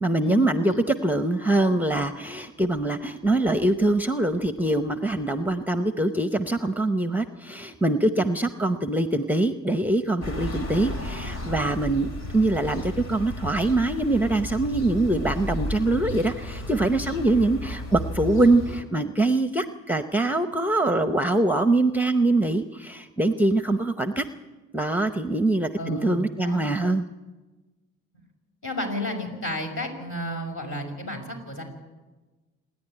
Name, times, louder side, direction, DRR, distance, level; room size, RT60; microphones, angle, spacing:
voice 1, 0.0-24.2 24.7-27.0, right 2 dB, 5° right, 9 dB, 0.8 m, -23 dB
sound 1, 10.2-18.8, left 1 dB, 60° left, 2.8 m, -34 dB
voice 2, 25.8-26.6 28.6-31.6, left 1 dB, 45° left, 3 dB, 5.7 m, -32 dB
27.5 x 10.5 x 9.9 m, 1.2 s
cardioid pair, 90°, 30 cm